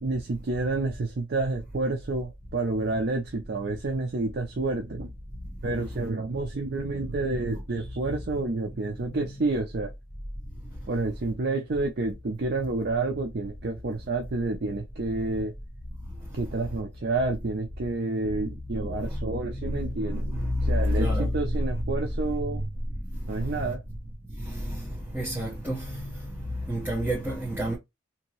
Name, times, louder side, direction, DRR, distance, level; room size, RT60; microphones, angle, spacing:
voice 1, 0.0-5.1 5.6-9.9 10.9-15.5 16.3-22.7 23.3-23.8, right 3 dB, 50° right, 0.5 m, -29 dB
voice 2, 19.6-20.7 21.0-21.3 24.7-24.8 25.1-26.0 26.7-27.8, equal, 10° right, 0.9 m, -28 dB
2.9 x 2.6 x 2.9 m
head